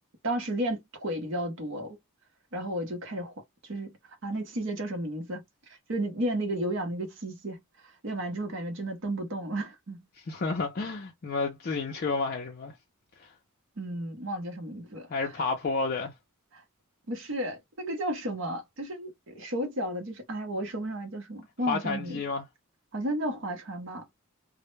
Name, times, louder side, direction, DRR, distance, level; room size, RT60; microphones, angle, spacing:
voice 1, 0.2-2.0 2.5-3.3 3.6-3.9 4.2-7.6 8.0-10.0 13.8-15.1 16.5-16.6 17.1-22.2 22.9-24.1, right 1 dB, 60° right, 0.8 m, -33 dB
voice 2, 10.1-12.8 13.2-13.3 15.1-16.1 21.7-22.5, left 4 dB, 45° left, 0.4 m, -31 dB
2.1 x 2.0 x 3.0 m
head